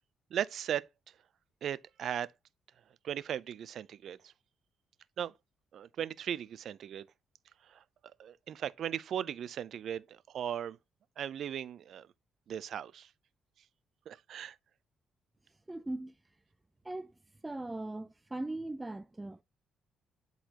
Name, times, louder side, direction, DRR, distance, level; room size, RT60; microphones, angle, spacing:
voice 1, 0.3-0.9 1.6-2.3 3.0-4.3 5.2-5.3 5.7-7.1 7.7-7.8 8.2-10.8 11.2-12.1 12.5-13.1 14.1-14.6, right 9 dB, 65° right, 0.5 m, -37 dB
voice 2, 15.7-16.2 16.8-17.1 17.4-19.4, right 2 dB, 15° right, 0.4 m, -39 dB
10.0 x 4.1 x 2.9 m
cardioid pair, 90°, 0 cm